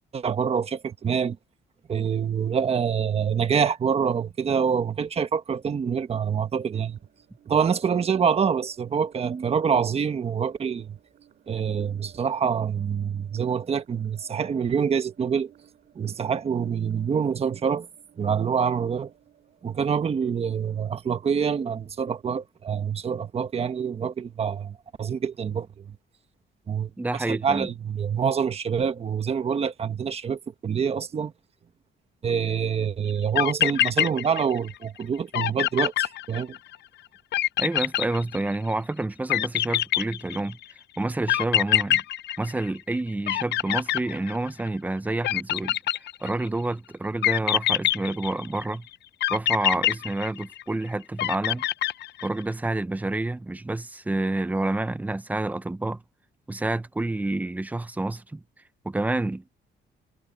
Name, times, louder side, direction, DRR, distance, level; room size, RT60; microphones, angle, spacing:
voice 1, 0.1-1.4 1.9-7.0 7.5-11.0 11.5-15.5 15.9-17.9 18.2-19.1 19.6-26.0 26.7-26.9 27.3-31.3 32.2-36.6, right 7 dB, 30° right, 1.2 m, -26 dB
sound 1, 5.9-20.8, right 10 dB, 50° right, 3.6 m, -59 dB
voice 2, 27.0-27.7 37.6-40.6 41.0-42.0 42.4-45.8 46.2-48.9 49.3-51.7 52.2-56.0 56.5-58.4 58.8-59.5, right 2 dB, 10° right, 0.6 m, -28 dB
sound 2, 33.1-33.2 33.4-34.7 35.0-35.1 35.3-36.8 37.3-38.7 39.3-40.6 41.3-43.0 43.3-44.7 45.2-46.5 47.2-48.6 49.2-50.7 51.2-52.4, left 13 dB, 60° left, 0.6 m, -25 dB
cardioid pair, 155°, 20 cm